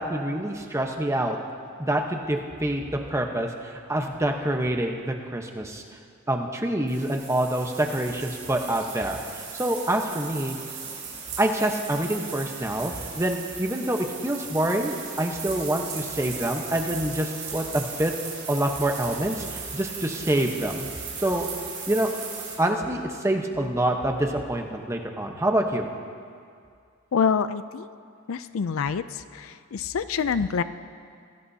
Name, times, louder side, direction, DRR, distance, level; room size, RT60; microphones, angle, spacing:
voice 1, 0.0-1.4 1.8-5.8 6.3-10.6 11.4-18.1 18.5-20.9 21.2-21.5 21.9-22.1 22.6-25.9, right 1 dB, 15° right, 3 dB, 1.0 m, -26 dB
sound 1, 6.9-22.5, right 5 dB, 35° right, 4.3 m, -37 dB
voice 2, 27.1-27.9 28.3-29.0 29.4-30.6, left 6 dB, 65° left, 13 dB, 0.4 m, -26 dB
24.0 x 17.5 x 2.8 m, 2.3 s
head